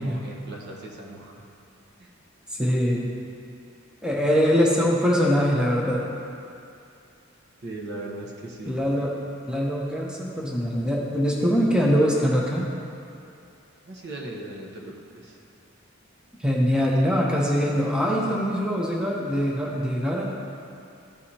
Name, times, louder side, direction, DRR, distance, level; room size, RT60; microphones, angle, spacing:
voice 1, 0.0-1.4 2.0-2.1 7.6-8.8 9.4-9.5 13.8-15.4, right 2 dB, 55° right, -1 dB, 1.1 m, -38 dB
voice 2, 2.5-3.1 4.0-6.0 8.7-9.2 9.5-12.6 16.4-20.3, equal, 5° right, -3 dB, 0.7 m, -23 dB
14.0 x 4.8 x 2.8 m, 2.5 s
head